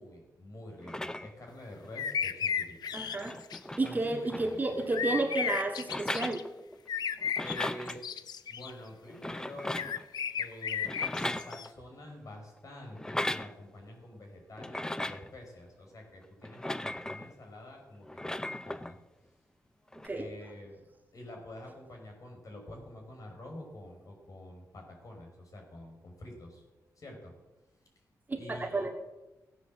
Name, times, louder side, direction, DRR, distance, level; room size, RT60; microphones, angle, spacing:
voice 1, 0.0-2.8 3.8-4.6 7.4-8.0 8.5-9.9 10.4-19.0 20.1-20.8 21.1-26.6 27.0-27.3 28.4-28.9, left 1 dB, 55° left, 1 dB, 5.4 m, -47 dB
sound 1, 0.8-1.5 2.6-2.7 3.0-4.9 5.8-6.9 7.2-8.0 9.1-10.1 10.8-11.9 12.9-13.5 14.6-15.3 16.4-17.3 18.0-18.9 19.9-20.1, left 1 dB, 10° left, 0.5 m, -37 dB
sound 2, 1.9-3.6 4.9-6.4 6.9-8.7 9.8-11.7, left 7 dB, 90° left, 0.7 m, -34 dB
voice 2, 2.9-3.4 3.8-6.5 20.0-20.3 28.3-28.9, right 2 dB, 25° right, 3 dB, 2.0 m, -31 dB
16.0 x 9.4 x 7.6 m, 1.1 s
wide cardioid pair, 110°, 7 cm